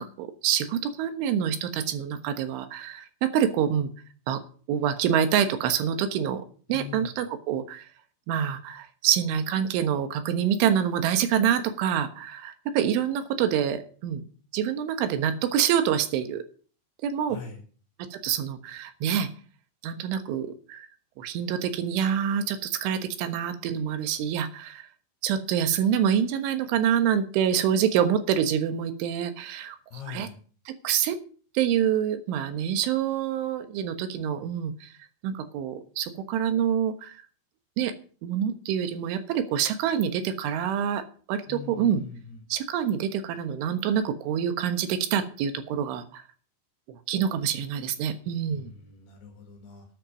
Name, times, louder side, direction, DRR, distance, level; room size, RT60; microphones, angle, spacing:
voice 1, 0.0-3.9 4.3-4.4 4.7-6.4 6.7-7.9 8.3-14.3 14.5-16.4 17.0-17.4 18.1-19.3 19.8-20.9 21.2-24.9 25.2-30.3 30.7-31.2 31.6-34.9 35.2-37.2 37.8-37.9 38.2-41.0 41.3-42.0 42.5-46.2 46.9-48.7, right 9 dB, 85° right, 9 dB, 3.8 m, -26 dB
voice 2, 6.7-7.1 17.3-17.6 29.9-30.4 41.5-42.4 48.5-49.9, left 7 dB, 65° left, 2 dB, 3.9 m, -42 dB
13.0 x 9.9 x 5.2 m, 0.42 s
omnidirectional pair, 5.4 m